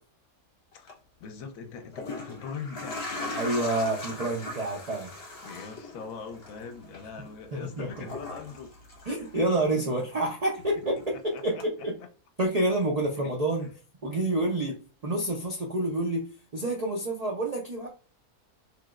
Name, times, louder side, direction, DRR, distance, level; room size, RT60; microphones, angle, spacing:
sound 1, 0.7-0.9 1.8-9.8 10.1-11.2 11.6-11.7, left 2 dB, 50° left, 1.2 m, -40 dB
voice 1, 1.2-3.6 4.1-4.4 5.4-8.7 9.2-9.5 11.3-11.6 13.2-13.3, left 5 dB, 75° left, 1.0 m, -42 dB
voice 2, 3.3-5.1 7.5-7.9 9.1-11.9 12.4-13.7 14.0-14.7 15.0-16.2 16.5-17.9, right 1 dB, 60° right, 0.4 m, -28 dB
3.1 x 2.9 x 2.4 m
omnidirectional pair, 1.5 m